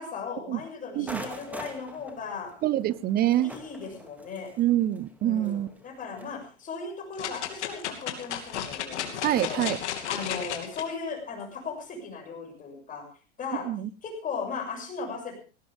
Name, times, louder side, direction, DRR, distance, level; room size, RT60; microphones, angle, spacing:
voice 1, 0.0-2.5 3.4-4.5 5.2-9.7 10.1-13.1 13.4-13.7 14.0-15.3, left 5 dB, 25° left, 2 dB, 7.2 m, -37 dB
sound 1, 1.1-6.4, right 1 dB, 5° right, 2.5 m, -44 dB
voice 2, 2.6-3.5 4.6-5.7 9.2-9.8 13.6-13.9, right 13 dB, 25° right, 19 dB, 0.8 m, -25 dB
sound 2, 7.2-10.8 11.4-11.5, left 10 dB, 75° left, 2.8 m, -33 dB
18.5 x 17.5 x 3.6 m, 0.38 s
hypercardioid pair, 130°, 35 cm